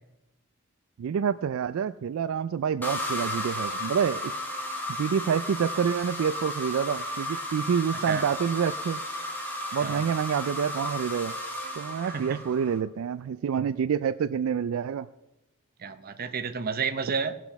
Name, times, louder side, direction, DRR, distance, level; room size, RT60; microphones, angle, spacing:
voice 1, 1.0-4.3 5.0-9.0 9.7-11.4 11.8-15.1, right 7 dB, 70° right, 13 dB, 0.3 m, -27 dB
sound 1, 2.8-12.8, left 1 dB, 10° left, 1.5 m, -34 dB
voice 2, 12.0-12.4 15.8-17.4, right 5 dB, 45° right, 10 dB, 0.7 m, -31 dB
17.5 x 6.0 x 5.8 m, 0.96 s
head